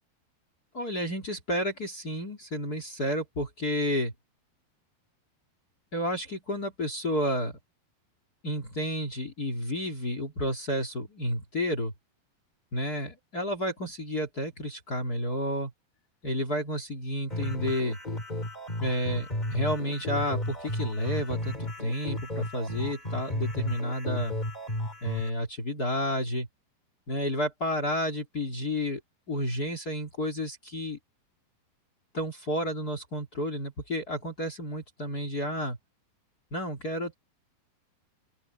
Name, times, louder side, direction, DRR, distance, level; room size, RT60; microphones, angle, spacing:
voice 1, 0.7-4.1 5.9-7.6 8.4-11.9 12.7-15.7 16.2-18.0 18.8-24.4 25.0-26.5 27.1-29.0 29.3-31.0 32.1-35.8 36.5-37.2, equal, 25° left, 2.5 m, -31 dB
sound 1, 17.3-25.3, left 1 dB, 10° left, 3.2 m, -33 dB
open air
omnidirectional pair, 4.7 m